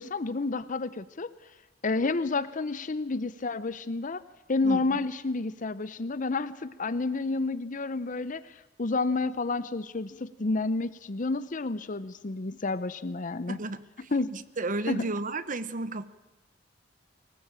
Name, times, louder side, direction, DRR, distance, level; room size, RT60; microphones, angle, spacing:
voice 1, 0.0-1.3 1.8-4.2 4.5-13.6 14.1-14.3 14.9-15.1, left 3 dB, 45° left, 15 dB, 0.7 m, -30 dB
voice 2, 4.6-5.0 13.5-16.0, right 2 dB, 45° right, 15 dB, 1.0 m, -33 dB
24.0 x 18.5 x 8.9 m, 1.1 s
head